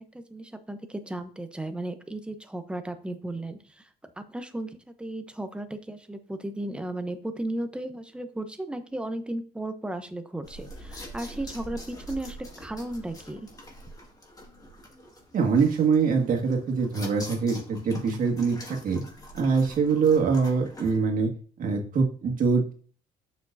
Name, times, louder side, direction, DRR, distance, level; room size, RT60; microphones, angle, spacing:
voice 1, 0.0-3.9 4.2-13.5, right 1 dB, 5° right, 9 dB, 0.8 m, -35 dB
sound 1, 10.4-21.0, equal, 20° left, 2.0 m, -44 dB
voice 2, 15.3-19.0 19.3-21.3 21.6-22.7, right 5 dB, 55° right, 1 dB, 1.9 m, -24 dB
7.2 x 6.6 x 2.7 m, 0.42 s
cardioid pair, 110°, 17 cm